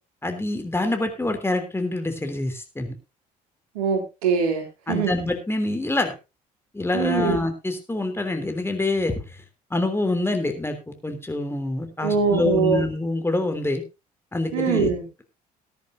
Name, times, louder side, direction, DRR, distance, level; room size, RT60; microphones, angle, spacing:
voice 1, 0.2-2.9 4.9-6.1 6.7-9.2 9.7-13.8 14.3-14.9, left 2 dB, 10° left, 6 dB, 3.2 m, -26 dB
voice 2, 3.8-5.1 6.9-7.4 12.0-12.8 14.5-15.0, right 5 dB, 70° right, 2 dB, 3.5 m, -23 dB
19.5 x 10.5 x 2.7 m, 0.27 s
figure-of-eight pair, 50°, 20 cm